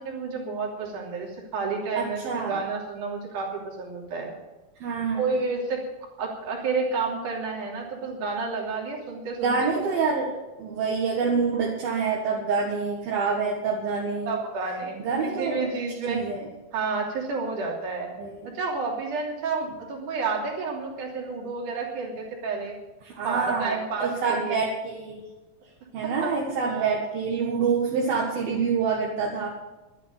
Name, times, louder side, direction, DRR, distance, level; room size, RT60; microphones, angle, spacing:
voice 1, 0.0-4.3 5.2-5.8 6.2-9.7 14.3-16.2 16.7-18.1 18.5-22.8 23.2-24.7 26.0-26.4 26.6-27.1, right 4 dB, 55° right, -1 dB, 4.3 m, -30 dB
voice 2, 2.0-2.5 4.8-5.4 9.4-10.3 10.6-14.4 15.0-15.6 16.1-16.5 18.2-18.5 23.1-25.2 25.9-29.5, right 5 dB, 70° right, -3 dB, 3.6 m, -26 dB
12.0 x 9.6 x 9.1 m, 1.1 s
omnidirectional pair, 4.5 m